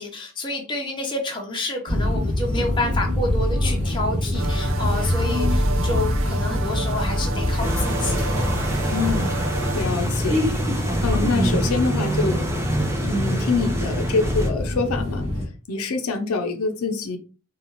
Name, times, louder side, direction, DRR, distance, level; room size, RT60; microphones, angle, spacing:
voice 1, 0.0-8.2, left 2 dB, 20° left, 0.8 m, -29 dB
sound 1, 1.9-15.4, left 1 dB, 30° right, 1.1 m, -24 dB
sound 2, 4.3-9.9, right 5 dB, 70° right, 0.6 m, -33 dB
sound 3, 7.6-14.5, right 1 dB, 10° right, 0.5 m, -28 dB
voice 2, 8.9-9.3 9.7-10.5 11.0-12.4 13.0-15.3 15.7-17.2, left 4 dB, 90° left, 0.6 m, -25 dB
4.0 x 2.4 x 3.1 m
head